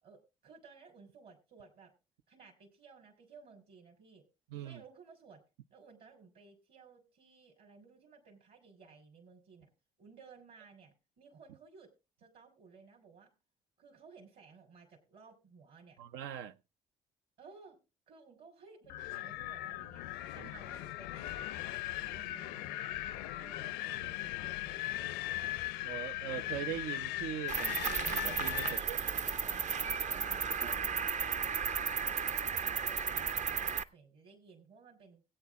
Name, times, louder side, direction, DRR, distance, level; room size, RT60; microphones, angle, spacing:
voice 1, 0.0-1.9 2.3-5.4 5.7-9.7 10.0-11.9 12.2-13.3 13.8-16.0 17.4-17.8 18.1-22.8 23.3-24.8 28.6-31.1 32.0-35.2, right 5 dB, 60° right, 3.4 m, -57 dB
voice 2, 4.5-4.8 16.0-16.6 20.4-20.5 25.8-29.2, right 10 dB, 75° right, 0.6 m, -41 dB
Wind, 18.9-28.8, left 16 dB, 75° left, 0.6 m, -39 dB
Cricket, 27.5-33.8, right 6 dB, 40° right, 0.7 m, -34 dB
17.5 x 8.7 x 3.6 m
hypercardioid pair, 55°, 18 cm